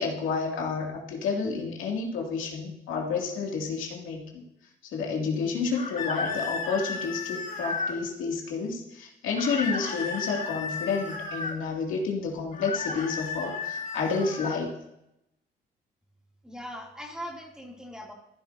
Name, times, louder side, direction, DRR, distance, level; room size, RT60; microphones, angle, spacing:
voice 1, 0.0-4.4 4.8-14.8, left 5 dB, 85° left, -1 dB, 2.3 m, -30 dB
sound 1, 5.7-8.0 9.4-11.6 12.5-14.6, left 4 dB, 40° left, 2.8 m, -33 dB
voice 2, 16.4-18.1, equal, 5° right, -1 dB, 2.5 m, -40 dB
14.5 x 10.0 x 2.6 m, 0.84 s
cardioid pair, 90°, 20 cm